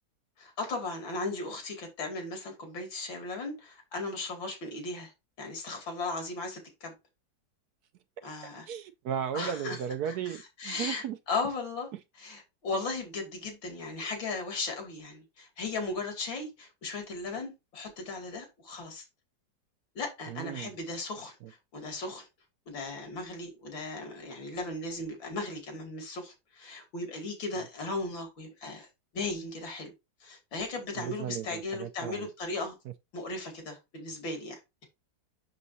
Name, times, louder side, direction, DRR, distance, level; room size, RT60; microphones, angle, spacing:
voice 1, 0.4-5.1 5.4-6.9 8.2-8.7 9.3-9.8 10.1-10.2 10.6-11.9 12.2-19.0 19.9-21.4 21.7-22.3 22.7-28.9 29.1-29.9 30.2-32.8 33.1-34.9, left 3 dB, 90° left, 3.1 m, -36 dB
voice 2, 8.7-11.2 20.3-20.7 30.9-32.3, right 9 dB, 70° right, 1.0 m, -35 dB
7.3 x 6.6 x 2.7 m
omnidirectional pair, 2.0 m